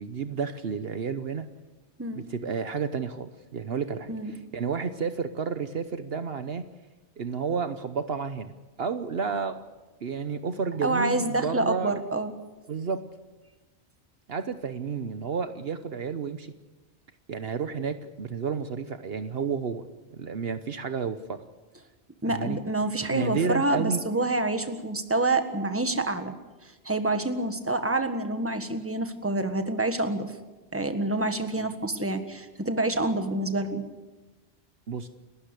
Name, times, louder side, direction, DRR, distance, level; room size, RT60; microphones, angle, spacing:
voice 1, 0.0-1.5 2.1-6.6 7.2-8.5 8.8-9.6 10.0-12.0 12.7-13.0 14.3-16.5 17.3-19.9 20.1-21.4 22.3-22.6 23.1-24.0 34.9-35.1, right 5 dB, 60° right, 10 dB, 1.1 m, -31 dB
voice 2, 10.8-12.3 22.2-26.3 26.8-30.3 30.7-33.8, right 2 dB, 10° right, 8 dB, 1.5 m, -27 dB
29.5 x 13.0 x 8.3 m, 1.2 s
omnidirectional pair, 1.2 m